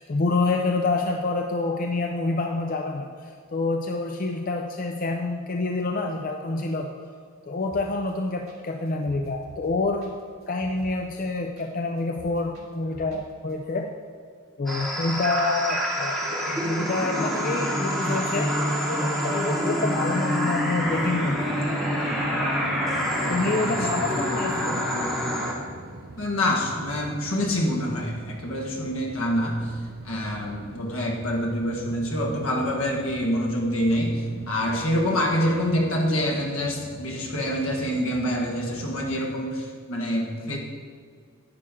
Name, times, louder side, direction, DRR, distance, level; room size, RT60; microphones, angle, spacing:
voice 1, 0.0-6.9 7.5-10.1 10.5-13.9 14.6-18.5 18.9-21.6 22.3-22.8 23.3-24.8, left 3 dB, 40° left, 3 dB, 0.5 m, -27 dB
sound 1, 7.7-8.1 8.5-8.6 8.9-11.7 12.0-13.2 13.5-13.6, equal, 75° right, 2.0 m, -47 dB
sound 2, 14.7-25.5, equal, ahead, 1.2 m, -26 dB
sound 3, 20.7-39.4, right 2 dB, 45° right, 0.5 m, -43 dB
voice 2, 26.2-29.7 30.0-40.6, equal, 75° left, 0 dB, 1.5 m, -26 dB
10.5 x 8.7 x 3.7 m, 2.1 s
head